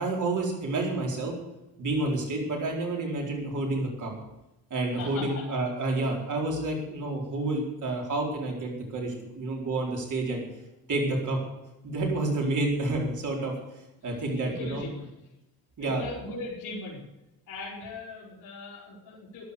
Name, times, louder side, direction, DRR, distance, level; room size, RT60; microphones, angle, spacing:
voice 1, 0.0-1.3 1.8-4.1 4.7-10.4 10.9-11.4 11.8-13.5 14.0-14.8 15.8-16.0, right 2 dB, 45° right, 0 dB, 4.3 m, -29 dB
voice 2, 4.9-5.5 14.1-15.1 15.8-17.0 17.5-19.5, left 3 dB, 45° left, -7 dB, 3.9 m, -39 dB
14.0 x 10.5 x 6.7 m, 0.94 s
cardioid pair, 135°, 41 cm